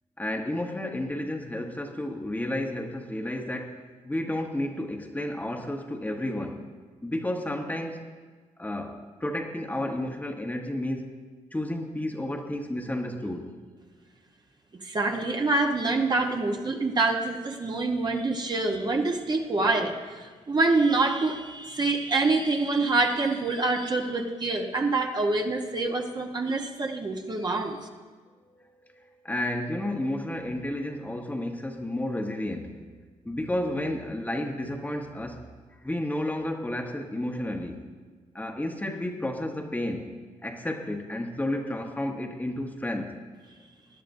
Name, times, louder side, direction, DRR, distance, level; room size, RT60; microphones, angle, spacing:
voice 1, 0.2-6.7 7.0-8.1 8.6-11.2 11.5-13.5 29.0-32.8 33.2-35.5 35.8-37.9 38.3-43.2, left 1 dB, 10° left, 3 dB, 1.1 m, -32 dB
voice 2, 14.8-27.8, right 3 dB, 35° right, 3 dB, 1.1 m, -26 dB
18.5 x 11.0 x 2.7 m, 1.5 s
cardioid pair, 75°, 13 cm